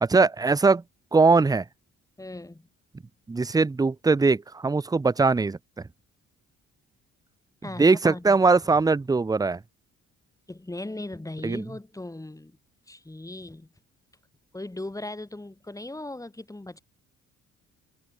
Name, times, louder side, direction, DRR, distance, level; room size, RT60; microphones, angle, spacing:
voice 1, 0.0-0.8 1.1-1.6 3.3-5.6 7.8-9.6 11.4-11.6, right 4 dB, 10° right, 0.5 m, -21 dB
voice 2, 2.2-2.7 7.6-8.4 10.5-12.6 12.9-13.7 14.5-16.8, left 2 dB, 10° left, 3.5 m, -38 dB
cardioid pair, 90°, 30 cm